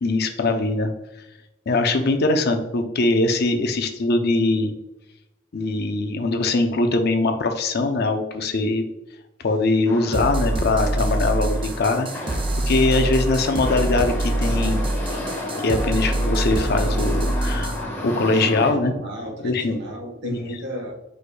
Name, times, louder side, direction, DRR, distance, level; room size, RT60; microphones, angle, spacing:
voice 1, 0.0-0.9 1.7-4.7 5.5-8.9 9.4-12.4 12.7-14.8 15.6-19.0 19.4-19.7 20.2-20.4, left 2 dB, 55° left, 6 dB, 0.6 m, -22 dB
sound 1, 9.9-18.7, left 1 dB, 10° left, 1.0 m, -32 dB
sound 2, 10.1-17.8, right 1 dB, 25° right, 0.4 m, -24 dB
voice 2, 18.3-20.9, equal, 60° right, 2 dB, 1.1 m, -34 dB
4.8 x 4.3 x 2.2 m, 0.93 s
head